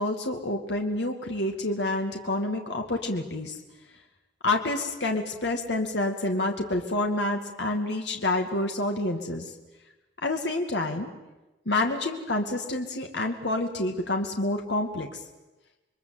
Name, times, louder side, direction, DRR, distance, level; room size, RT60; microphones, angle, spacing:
voice 1, 0.0-3.6 4.4-9.5 10.2-11.1 11.7-15.2, left 2 dB, 75° left, 3 dB, 2.2 m, -28 dB
28.5 x 22.0 x 7.9 m, 1.1 s
head